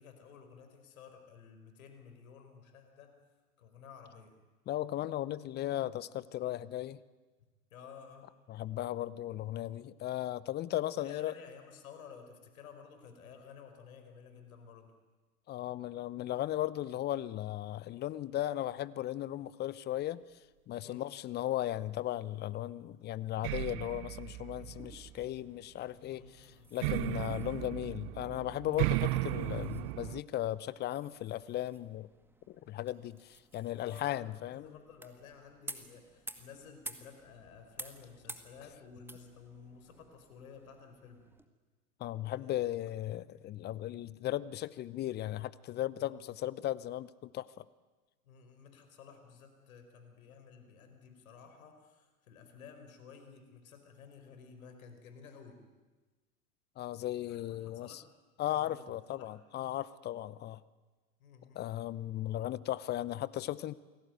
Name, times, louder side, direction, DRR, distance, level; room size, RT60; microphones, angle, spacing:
voice 1, 0.0-4.4 7.7-8.3 10.9-14.9 20.8-21.0 24.6-24.9 26.1-26.9 33.7-41.3 42.3-42.5 46.0-46.2 48.2-55.6 57.2-58.0 58.5-59.3 61.2-61.7, left 6 dB, 60° left, 7 dB, 5.1 m, -54 dB
voice 2, 4.7-7.0 8.5-11.3 15.5-20.2 20.7-32.1 32.5-34.7 42.0-47.6 56.8-58.0 58.4-60.6 61.5-63.7, left 13 dB, 20° left, 19 dB, 0.8 m, -36 dB
sound 1, 23.4-25.4 26.8-30.2, right 18 dB, 40° right, 0.9 m, -35 dB
sound 2, 24.6-41.5, right 2 dB, 5° right, 2.0 m, -53 dB
29.0 x 20.5 x 9.3 m, 1.3 s
figure-of-eight pair, 100°, 46 cm